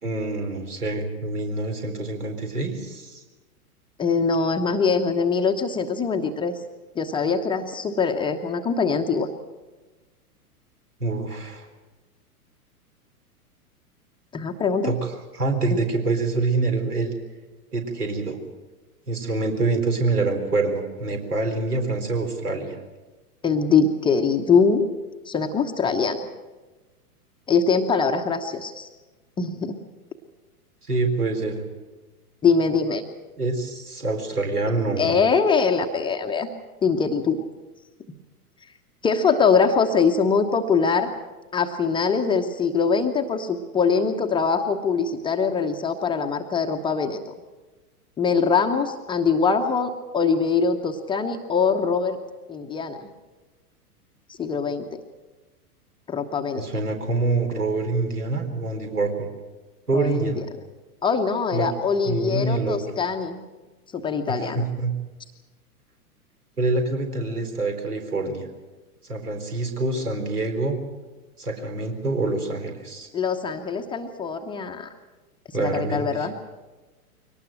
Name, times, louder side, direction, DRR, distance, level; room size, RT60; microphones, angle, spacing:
voice 1, 0.0-3.2 11.0-11.7 14.8-17.1 17.7-18.4 19.1-22.8 30.9-31.6 33.4-35.2 56.5-59.3 59.9-60.4 61.5-61.7 62.1-62.8 64.5-64.9 66.6-68.5 69.1-70.8 71.4-73.1 75.5-76.3, right 3 dB, 75° right, 4 dB, 4.2 m, -26 dB
voice 2, 4.0-6.5 6.9-9.3 14.3-14.9 15.7-15.8 23.4-24.9 25.3-26.2 27.5-28.9 29.4-29.7 32.4-33.0 35.0-36.5 36.8-37.4 39.0-41.1 41.5-47.2 48.2-52.2 52.5-53.1 54.3-54.9 56.1-56.7 59.9-60.3 61.0-63.5 63.9-64.6 73.1-74.9 75.6-76.3, left 5 dB, 10° left, 5 dB, 0.9 m, -23 dB
23.0 x 18.5 x 7.7 m, 1.2 s
figure-of-eight pair, 105°, 46 cm